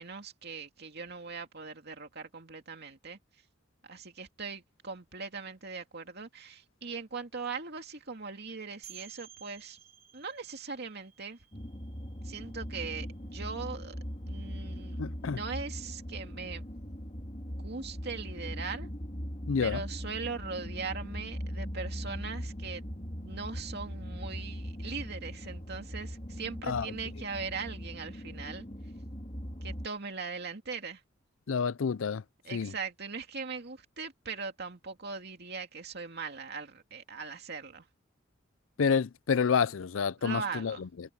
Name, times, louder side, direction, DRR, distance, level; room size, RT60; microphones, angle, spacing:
voice 1, 0.0-3.2 3.8-9.8 10.1-11.4 12.2-14.0 14.3-16.6 17.5-18.9 19.6-22.8 23.2-28.6 29.6-31.0 32.4-37.9 40.2-41.1, right 5 dB, 55° right, 2.5 m, -40 dB
sound 1, 8.8-14.3, right 10 dB, 35° right, 4.9 m, -55 dB
sound 2, 11.5-29.9, equal, 35° left, 3.5 m, -40 dB
voice 2, 15.0-15.4 19.5-19.8 26.7-26.9 31.5-32.2 32.5-32.7 38.8-41.1, left 6 dB, 85° left, 0.5 m, -29 dB
head